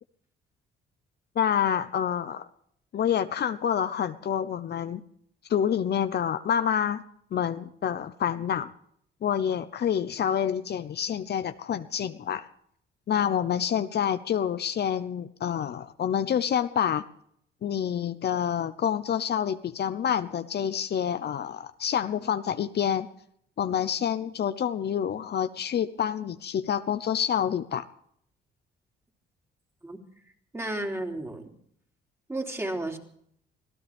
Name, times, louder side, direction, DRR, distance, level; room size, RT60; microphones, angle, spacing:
voice 1, 1.4-2.4 2.9-5.0 5.5-7.0 7.3-8.7 9.2-12.5 13.1-17.0 17.6-23.1 23.6-27.8, left 9 dB, 55° left, 10 dB, 0.9 m, -27 dB
voice 2, 30.5-31.5 32.3-33.0, right 1 dB, 15° right, 2 dB, 3.2 m, -32 dB
25.0 x 16.0 x 3.6 m, 0.67 s
cardioid pair, 90°, 20 cm